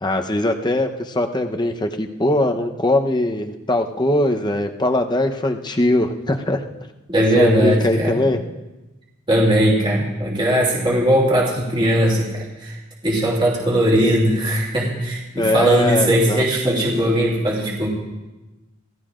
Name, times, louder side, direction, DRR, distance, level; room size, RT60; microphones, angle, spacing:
voice 1, 0.0-6.6 7.3-8.4 15.4-16.4, left 1 dB, 20° left, 5 dB, 0.8 m, -21 dB
voice 2, 7.1-8.2 9.3-12.8 13.0-17.9, right 1 dB, 25° right, -3 dB, 2.7 m, -19 dB
27.5 x 16.5 x 2.5 m, 1.1 s
head